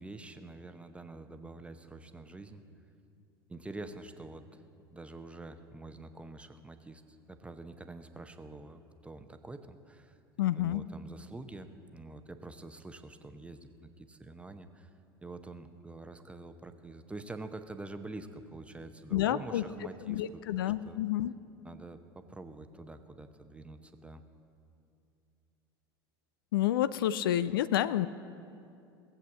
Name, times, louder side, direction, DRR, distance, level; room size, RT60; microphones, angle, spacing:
voice 1, 0.0-2.6 3.5-4.6 4.9-10.2 10.6-14.9 15.2-21.0 21.6-24.2, right 2 dB, 10° right, 8 dB, 0.8 m, -46 dB
voice 2, 10.4-10.8 19.1-19.6 20.1-21.3 26.5-28.1, left 12 dB, 70° left, 16 dB, 0.4 m, -29 dB
17.5 x 7.9 x 7.2 m, 2.5 s
figure-of-eight pair, 75°, 12 cm